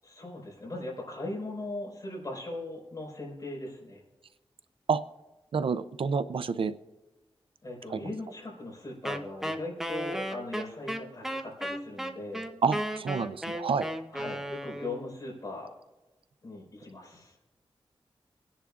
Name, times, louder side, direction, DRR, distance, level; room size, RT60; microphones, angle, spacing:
voice 1, 0.0-4.0 7.6-12.4 14.1-15.7 16.4-17.4, left 2 dB, 40° left, -2 dB, 4.8 m, -39 dB
voice 2, 5.5-6.7 7.9-8.0 12.6-13.9, right 5 dB, 70° right, 12 dB, 0.5 m, -28 dB
Wind instrument woodwind instrument, 9.0-15.1, equal, 5° right, 0.8 m, -35 dB
24.0 x 10.5 x 2.5 m, 1.1 s
wide cardioid pair, 125°, 10 cm